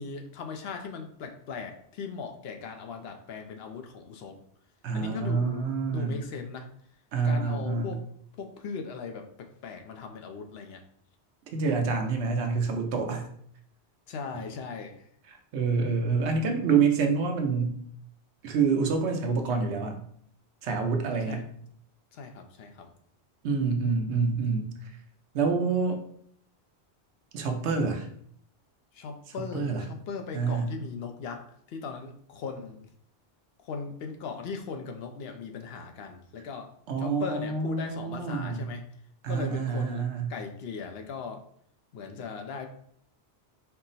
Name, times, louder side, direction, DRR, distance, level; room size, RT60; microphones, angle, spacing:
voice 1, 0.0-4.4 4.9-6.7 7.2-8.0 8.4-10.8 14.1-15.1 16.0-16.1 21.3-21.4 22.1-22.9 28.9-32.9 33.6-36.7 37.0-38.8 39.3-41.4 41.9-42.7, left 5 dB, 70° left, 5 dB, 0.8 m, -38 dB
voice 2, 4.8-6.2 7.1-7.9 11.5-13.2 15.5-17.8 18.4-20.0 20.6-21.4 23.4-24.7 25.3-26.0 27.3-28.1 29.5-29.8 30.3-30.7 36.9-38.7 39.2-40.3, right 5 dB, 80° right, 4 dB, 1.0 m, -27 dB
4.4 x 2.0 x 3.9 m, 0.64 s
omnidirectional pair, 1.1 m